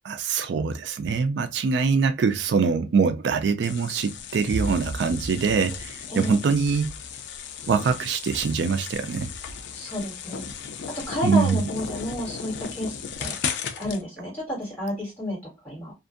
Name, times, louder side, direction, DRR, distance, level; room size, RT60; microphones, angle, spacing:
voice 1, 0.0-6.9 7.7-9.3 11.2-11.6, right 5 dB, 75° right, 0.3 m, -23 dB
sound 1, 3.6-14.0, left 7 dB, 75° left, 0.4 m, -36 dB
sound 2, 4.5-6.3, right 1 dB, 50° right, 1.1 m, -33 dB
voice 2, 6.1-6.4 9.7-10.5 10.9-13.4 13.8-15.4 15.6-15.9, left 1 dB, 10° left, 1.7 m, -31 dB
2.5 x 2.4 x 2.4 m
head